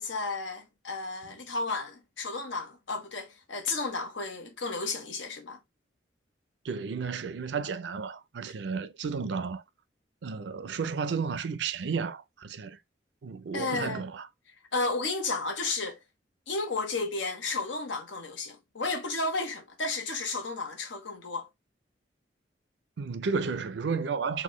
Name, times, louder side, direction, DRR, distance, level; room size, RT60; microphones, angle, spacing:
voice 1, 0.0-5.6 13.5-14.1 14.7-16.0 16.5-21.5, left 3 dB, 90° left, 1.0 m, -33 dB
voice 2, 6.6-9.6 10.2-12.8 13.2-14.3 23.0-24.4, right 5 dB, 70° right, 0.4 m, -32 dB
4.0 x 2.2 x 3.1 m
head